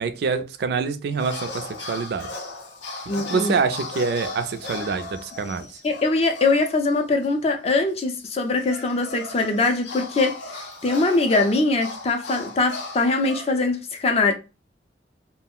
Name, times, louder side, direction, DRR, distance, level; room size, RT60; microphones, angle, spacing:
voice 1, 0.0-2.4 3.1-5.8, right 5 dB, 60° right, 0.3 m, -26 dB
sound 1, 1.2-6.9 7.2-7.3 8.2-13.5, left 3 dB, 85° left, 0.6 m, -36 dB
voice 2, 3.1-3.5 5.8-10.4 10.8-14.3, left 3 dB, 35° left, 0.4 m, -22 dB
2.4 x 2.0 x 3.5 m
head